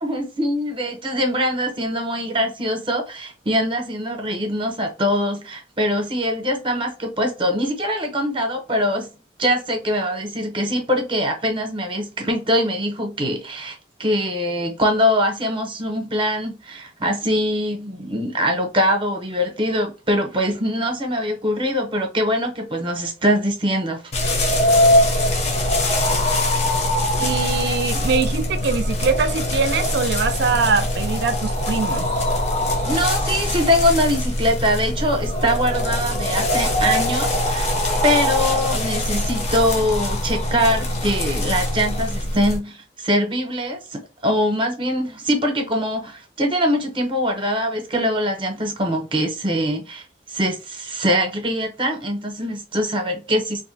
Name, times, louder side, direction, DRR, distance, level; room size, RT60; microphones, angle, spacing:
voice 1, 0.0-9.1 9.4-24.0 32.8-37.7 38.0-50.0 50.3-53.7, equal, 30° right, 0.7 m, -23 dB
sound 1, 24.1-42.6, left 1 dB, 40° left, 0.7 m, -22 dB
voice 2, 27.2-32.1, right 5 dB, 65° right, 0.4 m, -22 dB
2.6 x 2.1 x 3.9 m
head